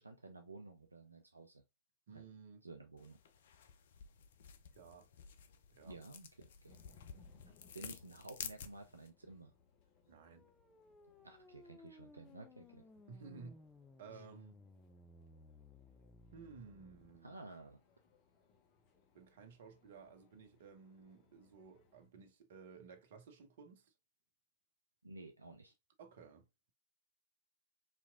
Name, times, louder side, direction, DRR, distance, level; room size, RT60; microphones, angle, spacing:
voice 1, 0.0-1.6 2.1-2.2 2.6-3.2 5.8-7.0 7.7-9.5 11.2-12.8 14.1-14.2 17.2-17.8 25.0-25.7, right 2 dB, 85° right, 0.5 m, -53 dB
voice 2, 2.1-2.6 4.7-5.1 5.7-6.0 10.0-10.5 13.1-13.6 14.0-14.6 16.3-17.4 19.1-23.9 26.0-26.7, right 5 dB, 60° right, 0.8 m, -55 dB
sound 1, 3.0-9.1, left 7 dB, 60° left, 0.5 m, -52 dB
sound 2, 6.7-22.1, left 4 dB, 40° left, 0.9 m, -69 dB
sound 3, 10.1-17.2, left 2 dB, 15° left, 0.5 m, -61 dB
4.1 x 2.9 x 2.5 m
figure-of-eight pair, 105°, 0 cm